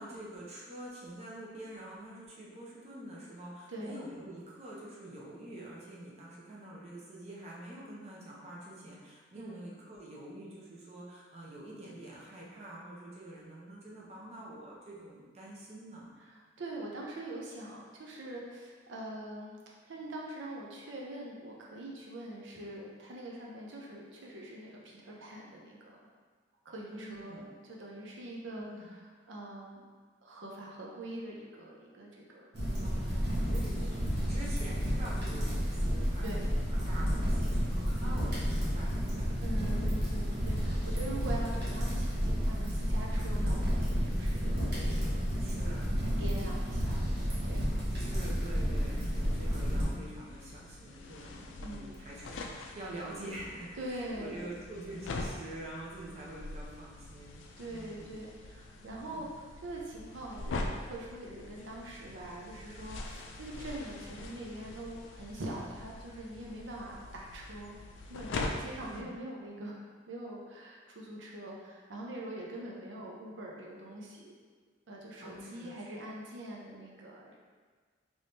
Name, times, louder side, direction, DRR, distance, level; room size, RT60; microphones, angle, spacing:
voice 1, 0.0-16.1 26.9-27.5 28.5-28.8 32.8-39.7 45.4-46.0 48.0-57.4 57.7-58.1 58.8-59.3 68.8-69.2 75.2-76.1, right 1 dB, 35° right, -5 dB, 0.7 m, -46 dB
voice 2, 3.7-4.0 9.3-9.7 16.6-19.5 19.8-25.8 26.6-27.4 27.7-29.0 29.3-29.8 30.2-32.5 33.1-33.7 34.2-34.6 36.2-36.5 39.4-45.3 45.9-47.0 47.4-47.7 51.6-52.0 53.8-54.5 57.6-67.7 68.1-69.8 70.1-74.2 74.9-77.4, right 1 dB, 90° right, -3 dB, 0.6 m, -43 dB
sound 1, 32.5-49.8, equal, 65° right, 1.0 m, -31 dB
sound 2, 49.2-69.0, left 2 dB, 80° left, 0.4 m, -43 dB
3.4 x 3.1 x 2.7 m, 1.5 s
head